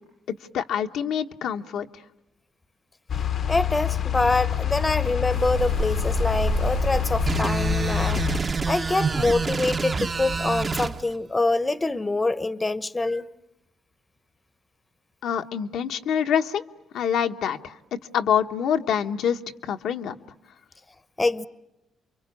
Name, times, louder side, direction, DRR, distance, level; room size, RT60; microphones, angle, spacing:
voice 1, 0.3-1.9 15.2-16.6 16.9-20.2, left 8 dB, 80° left, 1.1 m, -26 dB
sound 1, 3.1-8.4, left 10 dB, 55° left, 0.9 m, -26 dB
voice 2, 3.5-8.3 8.7-13.2 21.2-21.5, left 2 dB, 20° left, 0.9 m, -25 dB
sound 2, 5.3-11.0, right 5 dB, 60° right, 1.7 m, -31 dB
sound 3, 7.3-10.9, right 4 dB, 35° right, 1.0 m, -28 dB
29.5 x 23.5 x 8.4 m
cardioid pair, 90°, 0 cm